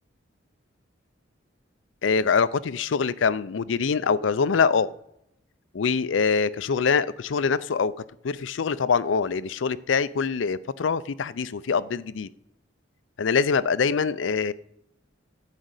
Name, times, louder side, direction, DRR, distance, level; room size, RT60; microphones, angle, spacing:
voice 1, 2.0-4.9 5.7-7.9 8.2-12.3 13.2-14.5, left 5 dB, 80° left, 17 dB, 0.5 m, -24 dB
14.0 x 5.0 x 8.1 m, 0.83 s
head